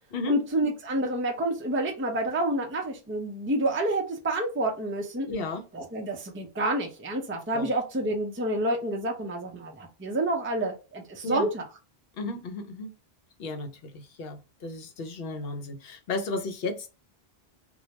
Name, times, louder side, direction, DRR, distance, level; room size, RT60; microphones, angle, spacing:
voice 1, 0.3-5.3 5.7-11.6, right 1 dB, 15° right, 1 dB, 0.4 m, -28 dB
voice 2, 5.3-5.6 7.5-7.7 11.2-11.5 12.2-12.9 13.4-16.9, left 2 dB, 70° left, 5 dB, 0.8 m, -34 dB
2.4 x 2.1 x 2.8 m, 0.30 s
omnidirectional pair, 1.0 m